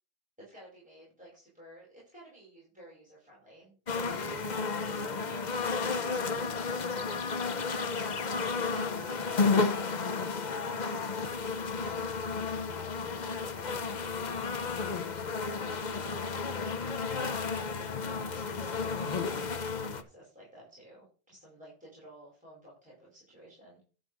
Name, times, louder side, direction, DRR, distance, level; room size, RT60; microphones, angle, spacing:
voice 1, 0.4-11.3 11.8-13.8 14.2-16.2 16.8-17.4 17.8-23.8, equal, 5° right, -6 dB, 4.9 m, -53 dB
sound 1, 3.9-20.0, left 4 dB, 45° left, 0.9 m, -32 dB
11.5 x 4.5 x 6.2 m, 0.39 s
omnidirectional pair, 1.1 m